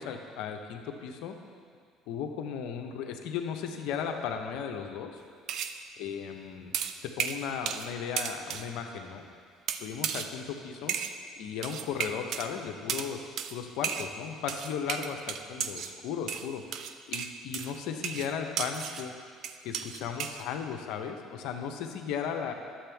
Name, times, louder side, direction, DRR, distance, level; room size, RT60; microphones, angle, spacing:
voice 1, 0.0-1.4 2.1-5.2 6.0-6.7 7.0-9.3 9.7-10.9 11.4-19.1 19.6-22.5, left 7 dB, 75° left, 5 dB, 0.8 m, -36 dB
sound 1, 5.5-5.8 6.7-7.9 8.2-8.7 9.7-10.3 10.9-11.2 11.6-12.5 12.9-13.1 13.4-13.6 13.8-14.1 14.5-15.9 16.3-19.1 19.4-20.4, right 8 dB, 65° right, 0.5 m, -34 dB
11.5 x 7.8 x 3.5 m, 2.1 s
supercardioid pair, 80°, 0 cm